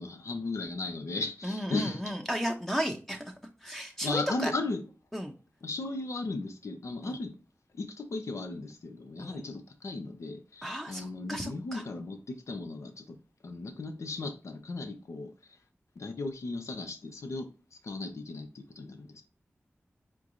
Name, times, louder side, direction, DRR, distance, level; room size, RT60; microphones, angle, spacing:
voice 1, 0.0-2.0 4.0-4.8 5.6-7.4 7.7-13.2 13.4-15.3 16.0-17.5 17.8-19.2, left 3 dB, 85° left, 0.7 m, -36 dB
voice 2, 1.4-3.2 3.6-4.5 5.1-5.3 7.0-7.2 9.2-9.5 10.6-11.8, equal, 5° left, 0.7 m, -34 dB
4.6 x 3.7 x 2.5 m
wide cardioid pair, 65°, 5 cm